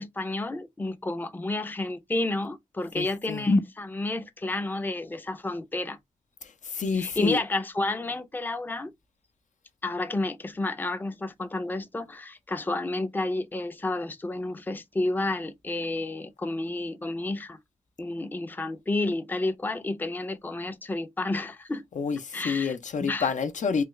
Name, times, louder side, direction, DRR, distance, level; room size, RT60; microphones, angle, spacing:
voice 1, 0.0-6.0 6.9-8.9 9.8-17.6 18.0-21.8 22.3-23.3, left 2 dB, 15° left, 0.4 m, -30 dB
voice 2, 3.0-3.5 6.7-7.4 21.9-23.8, left 5 dB, 65° left, 0.5 m, -28 dB
3.2 x 2.4 x 3.0 m
wide cardioid pair, 100°, 13 cm